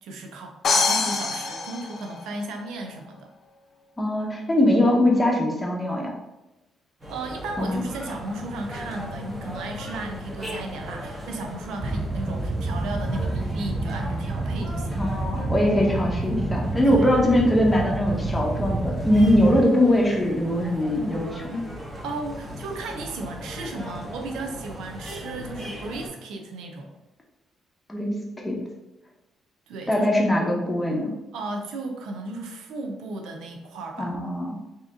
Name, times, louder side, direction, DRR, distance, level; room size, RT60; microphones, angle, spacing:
voice 1, 0.0-3.3 7.1-15.0 16.8-17.2 22.0-27.0 29.7-30.1 31.3-34.2, right 2 dB, 85° right, 3 dB, 0.6 m, -35 dB
sound 1, 0.6-2.6, left 4 dB, 55° left, 0.6 m, -25 dB
voice 2, 4.0-6.1 7.6-7.8 15.0-21.6 27.9-28.2 28.4-28.6 29.9-31.1 34.0-34.5, left 1 dB, 15° left, -1 dB, 0.9 m, -21 dB
sound 2, 7.0-26.1, equal, 15° right, 1.3 m, -38 dB
sound 3, 11.8-19.6, right 2 dB, 35° right, 0.4 m, -28 dB
3.5 x 2.8 x 3.6 m, 0.99 s
cardioid pair, 90°, 0 cm